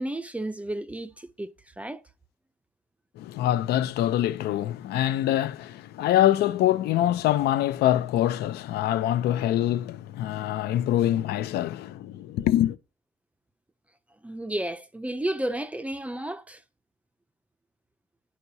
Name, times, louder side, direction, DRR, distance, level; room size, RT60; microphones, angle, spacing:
voice 1, 0.0-2.0 14.2-16.6, right 1 dB, 10° right, 0.5 m, -32 dB
voice 2, 3.2-12.8, left 12 dB, 75° left, 0.6 m, -24 dB
11.5 x 4.7 x 2.7 m
cardioid pair, 110°, 17 cm